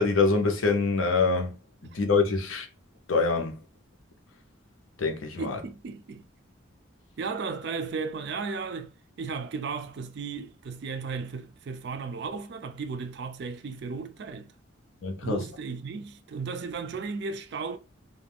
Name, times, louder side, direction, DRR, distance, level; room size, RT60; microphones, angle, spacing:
voice 1, 0.0-1.5 1.8-2.7 3.1-3.6 5.0-5.6 15.0-15.4, left 4 dB, 85° left, 0.6 m, -25 dB
voice 2, 5.4-6.2 7.2-8.9 9.2-14.5 15.2-17.8, right 4 dB, 55° right, 0.3 m, -35 dB
2.4 x 2.2 x 3.4 m
head